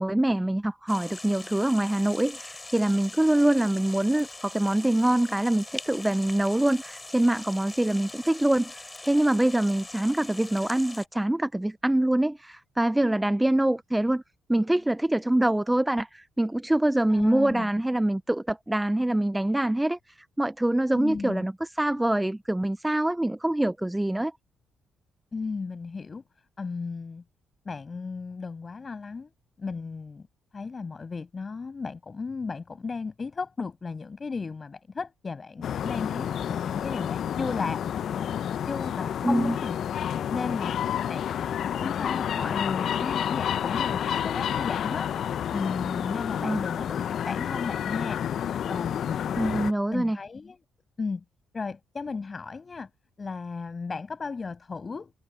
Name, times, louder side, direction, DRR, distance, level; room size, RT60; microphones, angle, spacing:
voice 1, 0.0-14.2 14.5-20.0 20.4-21.5 21.8-24.3 39.2-39.6 46.4-46.6 49.4-50.2, right 1 dB, 10° right, 0.5 m, -24 dB
sound 1, 0.9-11.1, left 2 dB, 15° left, 7.0 m, -42 dB
voice 2, 17.1-17.7 20.9-21.5 25.3-26.2 26.6-27.2 27.7-29.3 29.6-30.3 30.5-37.8 38.7-39.8 40.3-40.8 41.1-49.4 49.9-50.6 51.0-51.2 51.5-52.9 53.2-55.1, left 4 dB, 35° left, 7.2 m, -35 dB
sound 2, 35.6-49.7, left 9 dB, 65° left, 0.6 m, -29 dB
cardioid pair, 90°, 0 cm